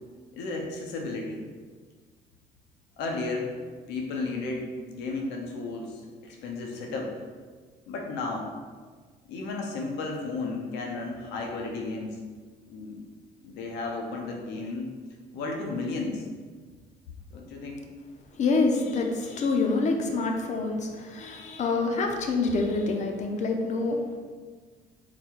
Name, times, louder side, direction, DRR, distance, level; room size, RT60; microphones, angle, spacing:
voice 1, 0.3-1.4 3.0-3.6 3.9-4.6 4.9-7.1 7.9-8.5 9.3-12.2 12.7-13.0 13.4-14.9 15.3-16.3 17.3-17.8, left 3 dB, 85° left, 1 dB, 0.7 m, -33 dB
voice 2, 18.4-24.2, left 3 dB, 45° left, 3 dB, 0.6 m, -26 dB
4.0 x 2.2 x 4.4 m, 1.5 s
cardioid pair, 110°, 17 cm